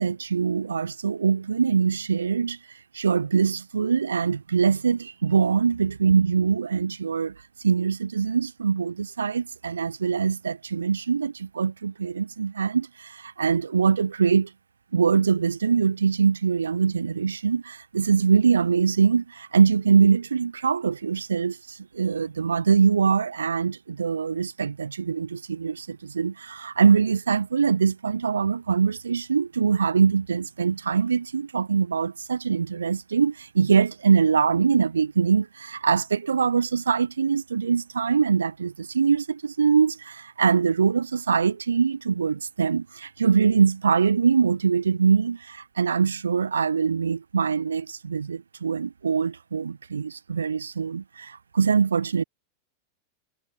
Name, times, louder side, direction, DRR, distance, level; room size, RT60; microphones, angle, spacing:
voice 1, 0.0-2.6 2.9-7.3 7.6-14.5 14.9-52.2, right 6 dB, 70° right, 0.4 m, -23 dB
figure-of-eight pair, 90°, 0 cm